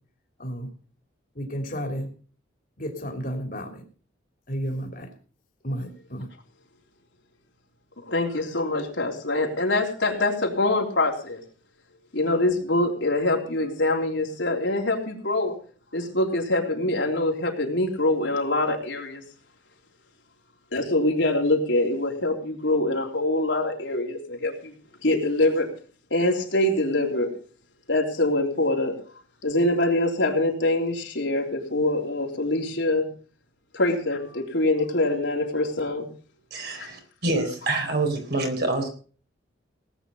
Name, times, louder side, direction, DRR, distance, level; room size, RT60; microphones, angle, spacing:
voice 1, 1.3-2.1 2.8-3.8 4.5-5.1 5.6-6.3, equal, 45° left, 4 dB, 3.1 m, -32 dB
voice 2, 8.0-11.4 12.1-15.5 15.9-19.2 20.7-24.7 25.0-25.7 26.1-27.3 27.9-29.0 29.4-33.1 33.7-36.1 36.7-36.9, left 2 dB, 70° left, 0 dB, 3.6 m, -24 dB
voice 3, 36.5-38.9, right 2 dB, 55° right, 4 dB, 4.2 m, -26 dB
18.5 x 9.2 x 5.3 m, 0.41 s
head